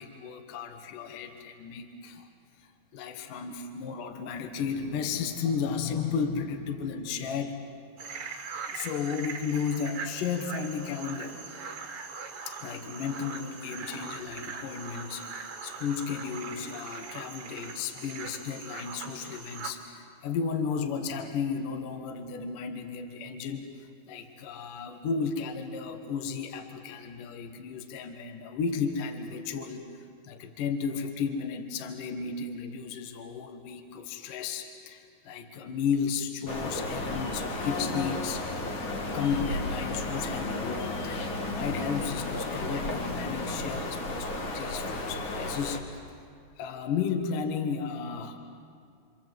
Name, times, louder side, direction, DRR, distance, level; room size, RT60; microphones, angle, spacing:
voice 1, 0.0-2.3 2.6-7.6 8.7-11.4 12.5-46.3 46.6-48.4, left 6 dB, 65° left, 5 dB, 2.8 m, -34 dB
sound 1, 8.0-19.7, right 5 dB, 50° right, 2.0 m, -41 dB
sound 2, 36.5-45.8, left 2 dB, 40° left, 2.0 m, -33 dB
28.5 x 26.0 x 7.7 m, 2.2 s
omnidirectional pair, 4.4 m